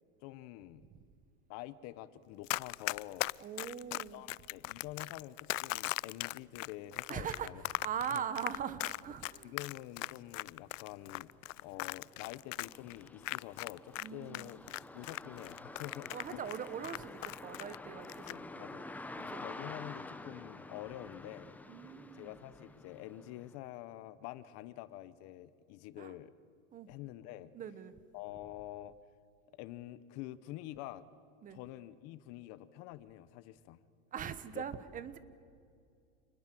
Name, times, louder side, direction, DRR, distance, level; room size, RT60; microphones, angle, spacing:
voice 1, 0.2-0.8 1.5-3.3 4.1-7.6 8.1-8.2 9.4-11.3 11.6-14.6 14.9-16.4 18.3-18.8 19.2-21.6 22.1-26.3 26.9-27.5 28.1-29.0 29.5-31.1 31.5-33.8 34.5-34.6, left 15 dB, 45° left, 16 dB, 1.0 m, -47 dB
Run, 2.5-14.1 14.3-17.8 18.0-18.4, left 19 dB, 90° left, 0.5 m, -39 dB
voice 2, 3.4-4.2 7.1-9.5 14.0-14.5 16.1-19.0 19.3-19.4 21.7-22.3 26.0-26.1 26.7-26.9 27.5-27.9 31.4-31.6 34.1-35.2, right 8 dB, 20° right, 14 dB, 1.0 m, -41 dB
sound 1, 10.7-23.6, left 2 dB, 5° left, 0.8 m, -49 dB
28.0 x 20.5 x 7.7 m, 2.4 s
supercardioid pair, 150°, 37 cm